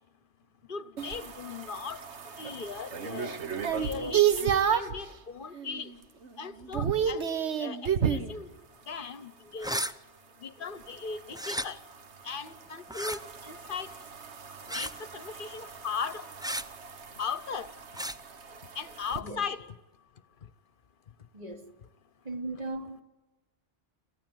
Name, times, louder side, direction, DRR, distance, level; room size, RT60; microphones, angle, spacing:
voice 1, 0.7-2.0 2.4-3.4 3.8-5.9 6.4-7.3 7.6-8.5 8.9-9.8 10.4-11.8 12.2-13.9 14.7-16.3 17.2-17.7 18.7-19.7, left 5 dB, 50° left, 1.0 m, -38 dB
sound 1, 1.0-5.0 5.5-5.9 6.2-8.3 10.8-19.2, right 8 dB, 75° right, 1.5 m, -32 dB
sound 2, 9.6-9.9 11.3-11.7 12.9-13.2 14.7-15.0 16.4-16.7 17.9-18.2, equal, 5° right, 0.4 m, -33 dB
voice 2, 21.3-21.7 22.3-23.0, right 2 dB, 35° right, 1.8 m, -37 dB
28.0 x 14.5 x 9.1 m
omnidirectional pair, 1.2 m